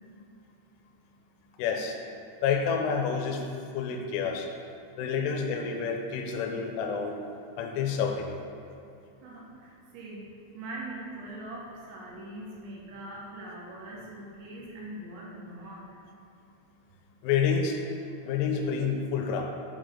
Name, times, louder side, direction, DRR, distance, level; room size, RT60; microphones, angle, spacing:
voice 1, 1.6-2.0 2.4-3.4 3.7-4.5 5.0-7.2 7.6-8.4 17.2-17.8 18.2-19.5, left 6 dB, 85° left, 3 dB, 3.1 m, -28 dB
voice 2, 9.2-10.3 10.5-15.9, right 1 dB, 75° right, -3 dB, 3.0 m, -42 dB
8.1 x 4.0 x 4.9 m, 2.5 s
omnidirectional pair, 5.7 m